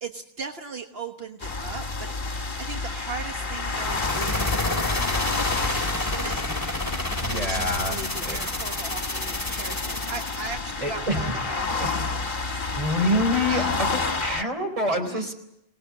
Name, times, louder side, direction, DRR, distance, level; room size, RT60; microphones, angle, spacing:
voice 1, 0.0-6.9 7.5-11.9 12.3-12.8 13.4-13.8 14.9-15.3, right 4 dB, 70° right, 5 dB, 1.6 m, -39 dB
sound 1, 1.4-14.4, left 3 dB, 55° left, 1.9 m, -30 dB
sound 2, 3.7-10.5, left 1 dB, 20° left, 2.4 m, -30 dB
voice 2, 7.2-8.0 8.2-8.4 10.8-11.3 11.7-12.0 12.8-13.9 14.2-15.3, left 1 dB, 35° right, 5 dB, 4.0 m, -26 dB
25.0 x 19.5 x 8.6 m, 0.78 s
omnidirectional pair, 1.0 m